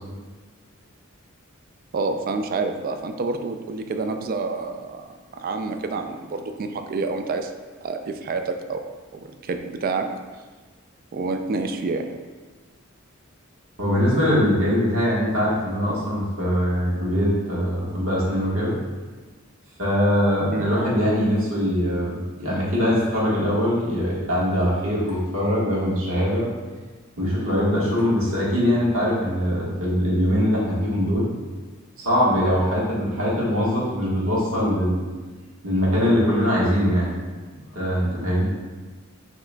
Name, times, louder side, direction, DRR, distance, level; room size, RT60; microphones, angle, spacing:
voice 1, 1.9-5.1 5.4-7.5 7.8-8.8 9.1-10.1 11.1-12.1 20.5-20.7, right 3 dB, 45° right, 6 dB, 0.3 m, -28 dB
voice 2, 13.8-18.8 19.8-26.5 27.2-31.3 32.0-35.0 35.6-37.1 37.7-38.4, equal, 85° right, -7 dB, 1.4 m, -22 dB
5.7 x 2.9 x 2.2 m, 1.3 s
head